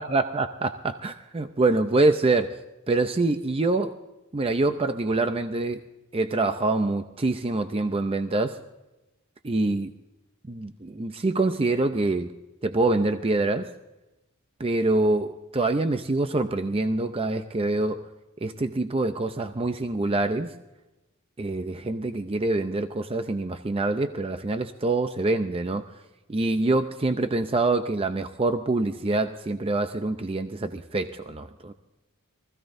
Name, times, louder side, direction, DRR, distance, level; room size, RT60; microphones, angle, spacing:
voice 1, 0.0-2.6 2.9-4.0 4.3-5.8 6.1-8.6 9.4-9.9 10.5-12.3 12.6-13.7 14.6-18.1 18.4-20.5 21.4-25.8 26.3-31.7, right 2 dB, 25° right, 8 dB, 0.6 m, -25 dB
24.0 x 15.5 x 2.6 m, 1.0 s
head